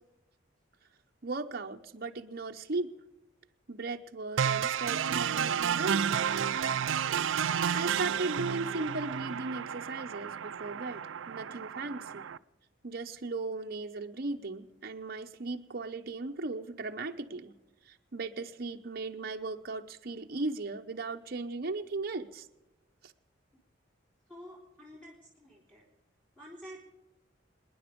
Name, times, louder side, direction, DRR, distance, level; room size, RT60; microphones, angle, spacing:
voice 1, 1.2-2.9 3.7-6.2 7.4-12.2 12.8-17.6 17.9-22.5 23.0-23.1, right 3 dB, 50° right, 4 dB, 0.8 m, -37 dB
sound 1, 4.4-12.4, right 8 dB, 85° right, 0.5 m, -31 dB
voice 2, 24.3-25.9 26.4-26.8, equal, 5° left, -5 dB, 3.5 m, -49 dB
27.0 x 10.0 x 5.2 m, 0.98 s
head